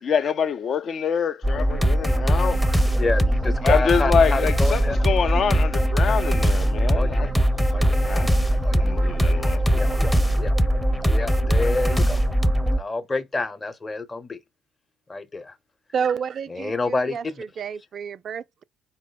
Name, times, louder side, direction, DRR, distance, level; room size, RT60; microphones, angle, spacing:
voice 1, 0.0-2.6 3.6-7.3 8.0-8.3 8.8-9.6, left 6 dB, 45° left, 0.5 m, -25 dB
sound 1, 1.4-12.8, equal, ahead, 0.7 m, -21 dB
voice 2, 3.0-5.1 6.9-7.2 7.7-8.0 8.6-8.9 9.7-10.5 11.0-12.2 12.7-14.4 15.1-15.6 16.5-17.4, left 3 dB, 25° left, 0.9 m, -29 dB
sound 2, 7.0-12.3, left 5 dB, 75° left, 1.1 m, -47 dB
voice 3, 15.9-18.6, right 7 dB, 45° right, 0.3 m, -30 dB
5.0 x 2.0 x 4.0 m
figure-of-eight pair, 50°, 0 cm